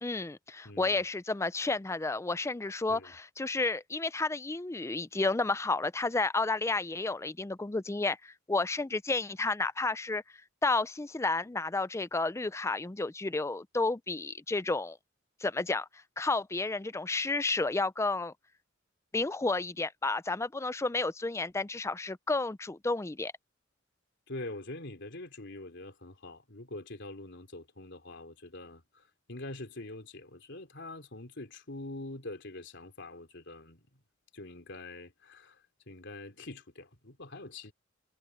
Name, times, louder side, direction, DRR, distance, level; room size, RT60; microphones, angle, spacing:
voice 1, 0.0-10.2 10.6-15.0 15.4-15.9 16.2-18.3 19.1-23.3, left 3 dB, 15° left, 0.4 m, -31 dB
voice 2, 0.6-1.0 2.9-3.1 24.3-33.9 34.3-35.6 35.9-37.7, left 2 dB, 60° left, 3.6 m, -44 dB
head